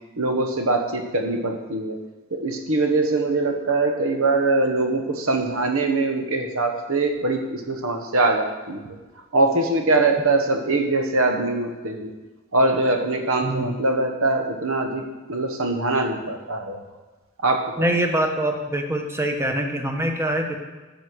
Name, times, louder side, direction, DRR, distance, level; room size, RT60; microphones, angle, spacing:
voice 1, 0.2-2.0 2.3-9.0 9.3-12.1 12.5-16.8 17.4-17.9, right 2 dB, 70° right, 4 dB, 1.3 m, -23 dB
voice 2, 17.8-20.6, right 1 dB, 10° right, 3 dB, 1.1 m, -24 dB
10.5 x 6.5 x 6.2 m, 1.2 s
head